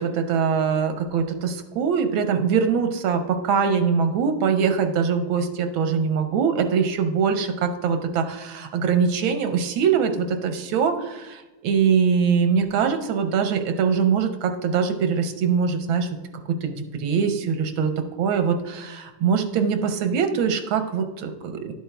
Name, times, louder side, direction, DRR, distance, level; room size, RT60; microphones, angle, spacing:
voice 1, 0.0-16.1 16.6-17.9 18.2-21.7, right 6 dB, 85° right, 7 dB, 1.6 m, -23 dB
11.0 x 8.0 x 2.3 m, 1.1 s
omnidirectional pair, 2.2 m